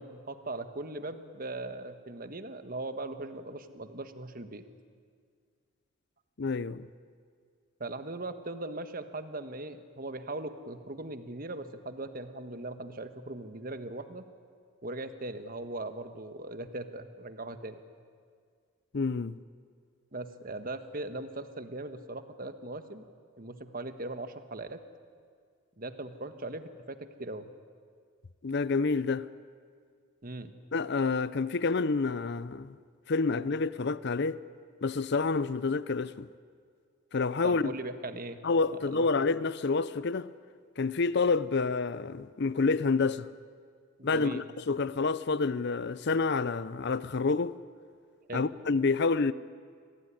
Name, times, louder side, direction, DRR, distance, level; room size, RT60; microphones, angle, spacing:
voice 1, 0.0-4.6 7.8-14.3 14.8-17.8 20.1-23.0 23.4-24.8 25.8-27.5 30.2-30.5 37.4-38.4 38.8-39.1 44.0-44.5 48.3-48.5, right 2 dB, 40° right, 1.4 m, -39 dB
voice 2, 6.4-6.9 18.9-19.3 28.4-29.3 30.7-32.7 33.1-34.4 34.8-36.3 37.1-37.7 38.4-40.3 40.8-43.3 44.0-47.5 48.3-49.3, left 4 dB, 55° left, 0.6 m, -28 dB
25.0 x 18.5 x 9.9 m
head